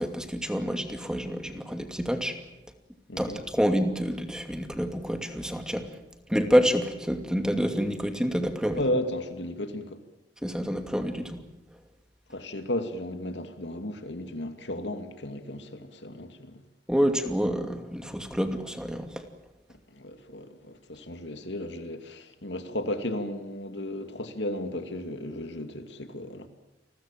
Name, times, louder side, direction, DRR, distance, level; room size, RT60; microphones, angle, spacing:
voice 1, 0.0-2.4 3.2-5.9 6.3-8.8 10.4-11.4 16.9-19.2, equal, 5° right, 2.5 m, -27 dB
voice 2, 8.8-10.0 12.3-16.6 19.7-26.5, left 1 dB, 85° left, 2.5 m, -34 dB
29.0 x 21.5 x 7.5 m
head